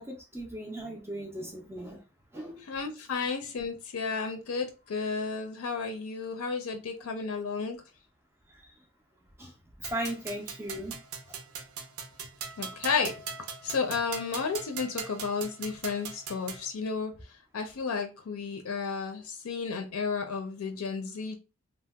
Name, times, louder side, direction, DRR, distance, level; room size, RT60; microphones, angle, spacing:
voice 1, 0.0-2.0 2.3-2.6 7.0-7.1 9.4-9.5 9.8-11.0, right 1 dB, 10° right, 0 dB, 0.3 m, -37 dB
voice 2, 2.6-7.8 12.6-17.1 17.5-21.4, left 5 dB, 70° left, 6 dB, 0.5 m, -32 dB
sound 1, 9.8-16.7, right 6 dB, 75° right, 0.5 m, -41 dB
2.7 x 2.0 x 3.3 m, 0.30 s
head